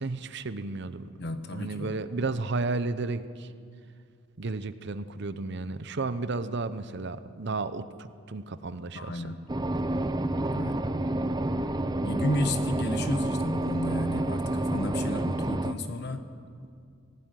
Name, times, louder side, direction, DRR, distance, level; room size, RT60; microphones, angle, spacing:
voice 1, 0.0-1.1 1.5-3.5 4.4-9.3, right 3 dB, 55° right, 13 dB, 0.7 m, -33 dB
voice 2, 1.2-1.9 8.9-9.4 10.5-10.8 12.0-16.2, left 1 dB, 50° left, 8 dB, 1.3 m, -32 dB
sound 1, 9.5-15.7, right 1 dB, 20° right, 0.6 m, -29 dB
19.0 x 15.0 x 9.2 m, 2.3 s
head